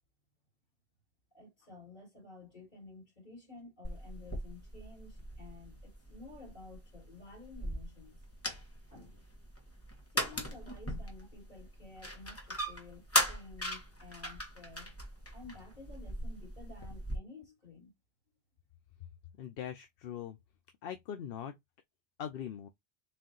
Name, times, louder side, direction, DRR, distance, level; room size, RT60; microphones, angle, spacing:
voice 1, 1.3-8.2 8.9-9.2 10.1-15.0 15.3-17.9, left 3 dB, 45° left, 3.0 m, -52 dB
sound 1, 3.8-17.2, equal, 15° left, 1.2 m, -39 dB
voice 2, 19.4-20.4 20.8-21.6 22.2-22.7, left 9 dB, 70° left, 0.8 m, -41 dB
4.3 x 2.7 x 3.8 m
omnidirectional pair, 1.0 m